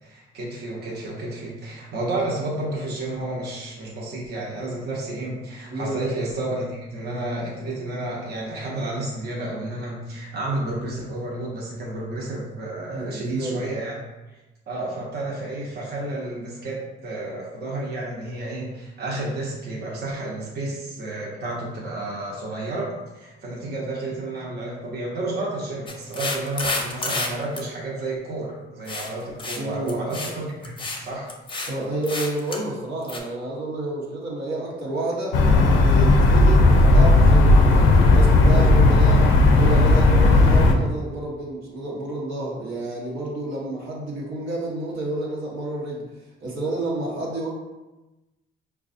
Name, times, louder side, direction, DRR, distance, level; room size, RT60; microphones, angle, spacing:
voice 1, 0.0-14.0 14.7-31.3, right 2 dB, 55° right, -4 dB, 0.9 m, -31 dB
voice 2, 12.9-13.6 29.6-29.9 31.7-35.4 35.8-46.0 46.4-47.5, right 2 dB, 80° right, -4 dB, 1.0 m, -29 dB
sound 1, 25.9-27.3 27.6-27.7 28.9-29.1 29.4-29.6 29.9-30.3 30.6-31.0 31.3-31.7 32.0-32.6 33.1-33.2, left 3 dB, 25° left, 0.5 m, -29 dB
sound 2, 35.3-40.7, left 2 dB, 85° left, 0.4 m, -15 dB
4.6 x 2.3 x 2.6 m, 1.1 s
cardioid pair, 90°, 20 cm